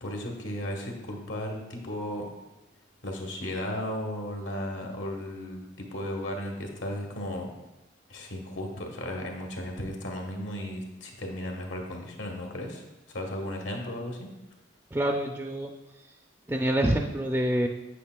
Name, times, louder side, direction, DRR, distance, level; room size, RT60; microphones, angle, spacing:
voice 1, 0.0-2.3 3.0-7.5 8.1-14.3, left 1 dB, 85° left, 2 dB, 1.3 m, -35 dB
voice 2, 14.9-15.7 16.5-17.7, right 1 dB, 10° right, 2 dB, 0.3 m, -26 dB
8.4 x 8.1 x 2.2 m, 1.0 s
head